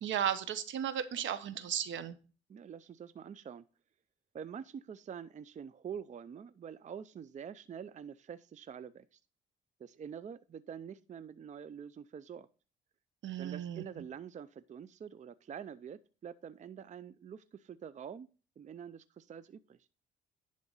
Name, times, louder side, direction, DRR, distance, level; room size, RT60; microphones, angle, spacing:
voice 1, 0.0-2.1 13.2-13.8, right 9 dB, 70° right, 13 dB, 1.0 m, -35 dB
voice 2, 2.5-3.6 4.3-9.2 9.8-12.5 13.4-18.3 18.6-19.8, right 7 dB, 35° right, 14 dB, 0.5 m, -46 dB
10.5 x 3.8 x 5.5 m, 0.35 s
cardioid pair, 90°, 20 cm